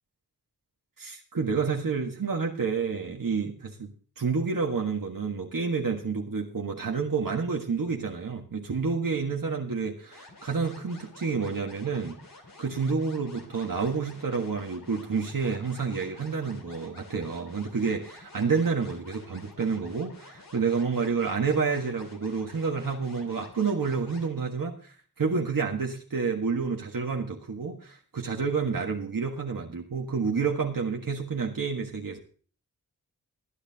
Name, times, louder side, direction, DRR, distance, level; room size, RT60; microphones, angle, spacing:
voice 1, 1.0-3.9 4.2-12.2 12.6-32.2, right 5 dB, 70° right, 1 dB, 1.6 m, -29 dB
sound 1, 10.1-24.3, left 3 dB, 70° left, 3.2 m, -50 dB
20.0 x 10.0 x 2.9 m, 0.41 s
wide cardioid pair, 60°, 34 cm